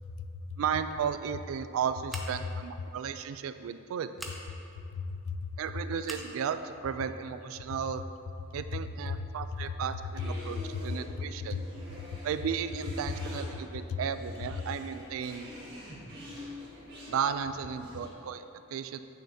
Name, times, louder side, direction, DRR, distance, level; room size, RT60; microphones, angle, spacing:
voice 1, 0.0-0.6 4.9-5.5 9.1-9.3 10.5-10.8 11.2-11.6 12.0-12.2 13.9-14.0, left 5 dB, 85° left, 11 dB, 0.3 m, -37 dB
voice 2, 0.6-4.1 5.6-8.0 8.5-11.7 12.2-15.5 17.1-19.0, right 7 dB, 80° right, 11 dB, 0.3 m, -34 dB
Scissors, 2.1-2.6 4.1-4.4 6.0-6.3, equal, ahead, 0.5 m, -42 dB
sound 1, 10.0-18.1, left 1 dB, 50° right, 1.6 m, -46 dB
8.5 x 6.6 x 2.7 m, 2.7 s
head